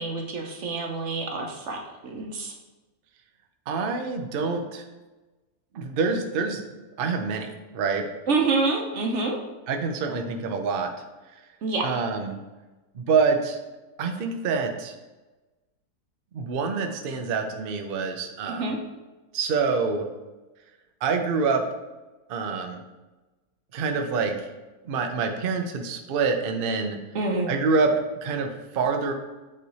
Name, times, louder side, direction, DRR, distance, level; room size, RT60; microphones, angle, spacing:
voice 1, 0.0-2.5 8.3-9.4 11.6-11.8 18.5-18.8 27.1-27.5, right 3 dB, 55° right, 1 dB, 0.8 m, -27 dB
voice 2, 3.7-4.8 5.7-6.6 7.0-8.0 9.7-10.9 11.8-12.4 12.9-13.6 14.0-14.9 16.3-18.7 19.3-20.1 21.0-21.6 22.3-22.8 23.7-24.5 24.8-27.0 27.5-27.9 28.2-29.1, right 4 dB, 90° right, 5 dB, 0.4 m, -26 dB
7.6 x 3.1 x 4.0 m, 1.1 s
omnidirectional pair, 1.8 m